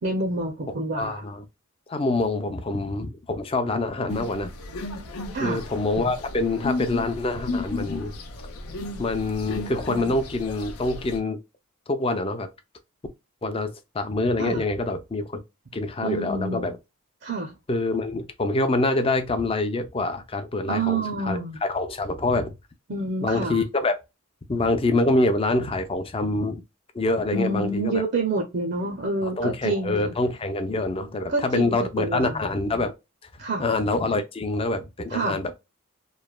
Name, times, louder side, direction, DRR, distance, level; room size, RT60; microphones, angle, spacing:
voice 1, 0.0-1.2 5.3-5.6 14.4-14.6 16.0-16.7 17.2-17.6 20.7-21.6 22.9-23.6 27.3-30.1 31.3-32.4 33.4-33.6 35.1-35.4, right 2 dB, 50° right, 0.5 m, -28 dB
voice 2, 0.9-1.4 1.9-4.5 5.4-8.1 9.0-11.4 11.9-12.5 13.4-15.4 15.7-16.7 17.7-22.5 23.2-23.9 24.5-26.6 26.9-28.0 29.2-32.9 33.6-35.5, left 2 dB, 25° left, 0.4 m, -25 dB
sound 1, 4.1-11.2, left 2 dB, 85° left, 0.6 m, -34 dB
3.1 x 2.1 x 2.2 m
head